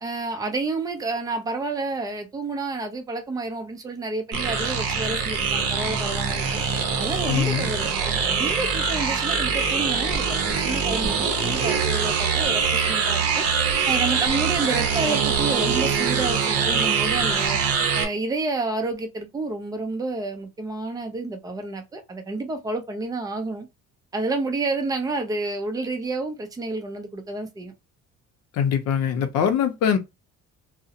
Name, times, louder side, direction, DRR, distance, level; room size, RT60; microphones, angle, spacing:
voice 1, 0.0-6.6 7.0-13.4 13.9-17.6 17.9-23.7 24.1-27.7, right 3 dB, 15° right, 0.4 m, -29 dB
sound 1, 4.3-18.1, right 6 dB, 55° right, 0.7 m, -23 dB
voice 2, 7.3-7.7 28.5-30.0, left 8 dB, 60° left, 0.6 m, -22 dB
2.4 x 2.0 x 2.7 m
cardioid pair, 175°, 29 cm